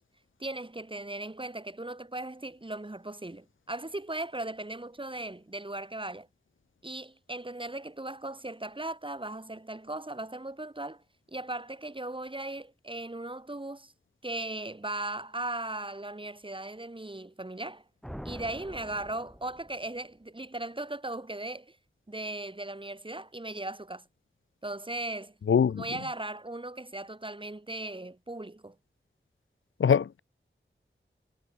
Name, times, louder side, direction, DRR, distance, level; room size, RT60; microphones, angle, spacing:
voice 1, 0.4-6.3 6.8-11.0 11.3-13.9 14.2-17.8 18.2-21.8 22.1-24.0 24.6-25.3 25.8-28.8, right 2 dB, 25° right, 2.4 m, -38 dB
sound 1, 18.0-20.0, equal, ahead, 7.5 m, -44 dB
voice 2, 25.5-25.8 29.8-30.2, left 7 dB, 85° left, 0.5 m, -23 dB
wide cardioid pair, 70°, 20 cm